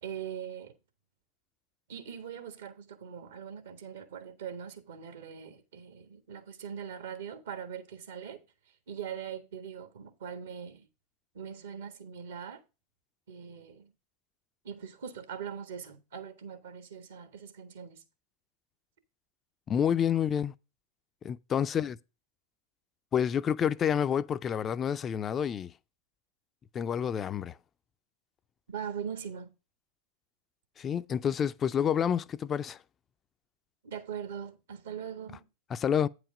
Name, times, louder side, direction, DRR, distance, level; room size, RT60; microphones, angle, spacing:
voice 1, 0.0-0.7 1.9-8.4 8.9-10.9 11.3-12.6 13.3-13.9 14.6-18.0 28.7-29.5 33.8-35.4, right 8 dB, 70° right, 1.3 m, -41 dB
voice 2, 19.7-20.5 21.2-22.0 23.1-25.7 26.7-27.6 30.8-32.8 35.7-36.1, left 8 dB, 30° left, 0.4 m, -28 dB
8.9 x 4.9 x 5.0 m
figure-of-eight pair, 90°, 0 cm